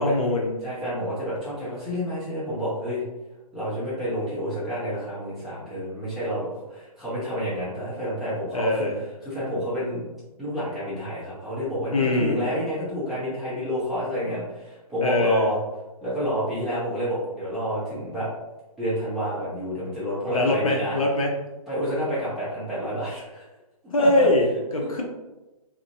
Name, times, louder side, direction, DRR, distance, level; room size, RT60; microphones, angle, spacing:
voice 1, 0.0-0.5 8.5-9.0 11.9-12.5 15.0-15.5 20.3-21.3 23.9-25.0, left 1 dB, 65° left, 1 dB, 0.5 m, -22 dB
voice 2, 0.6-3.0 3.5-8.9 9.2-10.0 10.4-15.6 16.0-18.3 18.8-21.0 21.7-23.4 24.0-24.3, equal, ahead, -13 dB, 0.6 m, -29 dB
2.4 x 2.1 x 2.5 m, 1.0 s
figure-of-eight pair, 135°, 20 cm